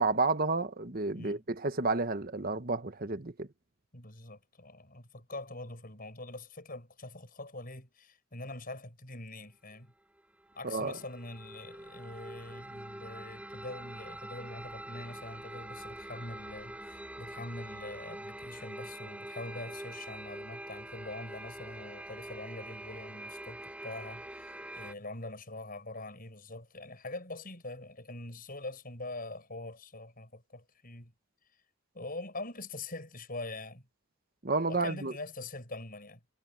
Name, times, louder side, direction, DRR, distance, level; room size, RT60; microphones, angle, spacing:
voice 1, 0.0-3.5 10.6-10.9 34.4-35.1, right 3 dB, 40° right, 1.2 m, -31 dB
voice 2, 3.9-9.9 10.5-31.1 31.9-33.9 34.7-36.4, left 2 dB, 40° left, 7.7 m, -44 dB
sound 1, 10.2-24.9, right 1 dB, 5° right, 3.4 m, -45 dB
head